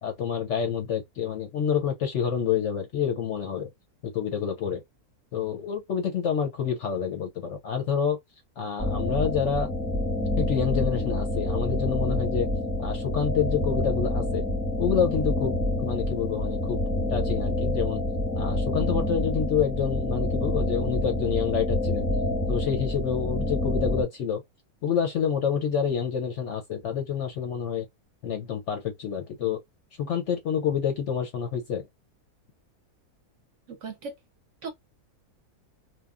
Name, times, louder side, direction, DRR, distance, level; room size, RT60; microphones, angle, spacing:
voice 1, 0.0-3.7 4.0-4.8 5.3-8.2 8.6-9.7 10.4-12.5 12.8-14.4 14.8-15.5 15.8-16.8 17.1-18.0 18.4-22.1 22.5-24.4 24.8-27.9 28.2-29.6 30.0-31.9, left 7 dB, 65° left, 0.7 m, -28 dB
sound 1, 8.8-24.0, left 1 dB, 5° right, 0.9 m, -27 dB
voice 2, 33.7-34.1 34.6-34.7, right 4 dB, 60° right, 0.8 m, -36 dB
3.0 x 2.2 x 2.3 m
omnidirectional pair, 1.7 m